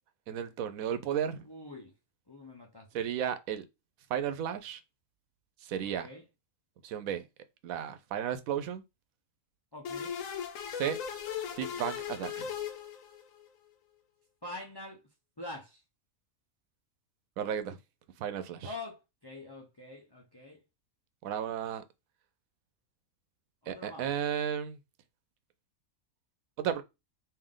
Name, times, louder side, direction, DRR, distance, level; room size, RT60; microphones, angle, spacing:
voice 1, 0.3-1.4 2.9-3.7 4.1-4.8 5.6-6.1 6.8-7.2 7.6-8.8 10.7-11.0 11.6-12.5 17.4-17.8 18.2-18.8 21.2-21.8 23.7-24.8 26.6-26.8, right 9 dB, 90° right, 1.1 m, -33 dB
voice 2, 1.4-1.9 2.3-2.9 5.8-6.2 9.7-10.2 14.4-15.0 15.4-15.8 18.6-20.6 23.6-24.1, left 2 dB, 30° left, 0.5 m, -45 dB
sound 1, 9.8-13.4, left 8 dB, 75° left, 1.0 m, -38 dB
3.4 x 2.6 x 3.7 m
omnidirectional pair, 1.4 m